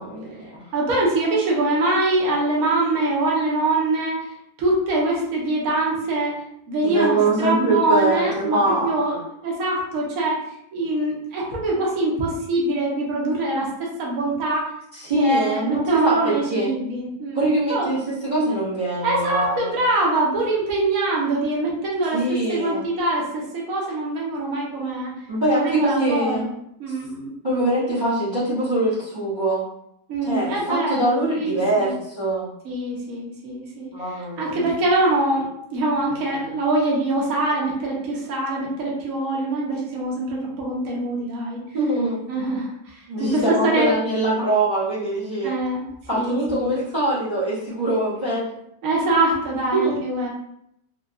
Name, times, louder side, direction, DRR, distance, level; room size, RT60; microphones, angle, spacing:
voice 1, 0.0-0.6 6.8-9.0 14.9-16.7 17.3-19.8 22.1-22.8 25.3-26.4 26.9-27.0 27.4-29.6 30.2-32.5 33.9-34.6 41.7-42.2 43.1-45.5 46.1-48.5 49.7-50.0, right 1 dB, 30° right, -10 dB, 1.1 m, -23 dB
voice 2, 0.7-4.3 4.6-10.4 10.7-14.7 15.1-17.9 19.0-22.2 22.5-25.1 25.5-26.5 26.8-27.3 30.1-31.9 32.6-41.6 42.3-43.9 45.4-45.8 46.1-46.7 48.8-50.3, right 2 dB, 65° right, -3 dB, 1.2 m, -24 dB
3.7 x 2.2 x 2.4 m, 0.77 s
omnidirectional pair, 1.7 m